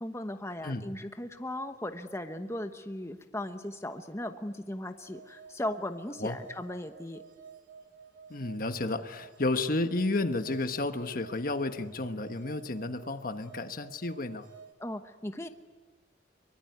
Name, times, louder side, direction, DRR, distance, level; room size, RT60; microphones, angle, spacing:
voice 1, 0.0-7.2 14.8-15.5, left 1 dB, 15° left, 7 dB, 1.1 m, -37 dB
sound 1, 5.0-14.7, right 6 dB, 75° right, 3.3 m, -52 dB
voice 2, 8.3-14.5, left 2 dB, 50° left, 8 dB, 1.2 m, -32 dB
24.0 x 23.5 x 9.4 m, 1.3 s
head